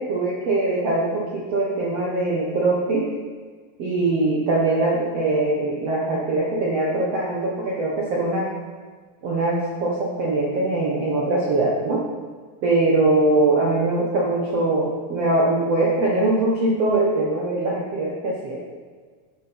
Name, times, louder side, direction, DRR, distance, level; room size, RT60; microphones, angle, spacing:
voice 1, 0.0-3.1 3.8-8.5 9.2-12.0 12.6-18.6, right 2 dB, 80° right, -4 dB, 1.4 m, -22 dB
13.5 x 6.1 x 5.6 m, 1.5 s
omnidirectional pair, 5.0 m